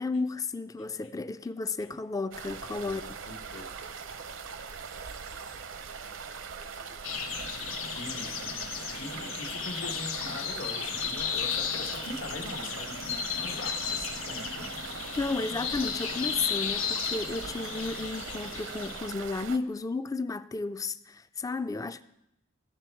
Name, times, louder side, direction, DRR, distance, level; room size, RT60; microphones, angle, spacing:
voice 1, 0.0-3.0 15.2-22.0, left 3 dB, 15° left, 0.3 m, -33 dB
sound 1, 2.3-19.6, right 5 dB, 70° right, 0.7 m, -41 dB
voice 2, 2.8-3.7 7.9-14.7, left 2 dB, 70° left, 1.2 m, -42 dB
sound 2, 7.0-19.1, left 7 dB, 90° left, 0.9 m, -35 dB
16.0 x 6.9 x 4.4 m
head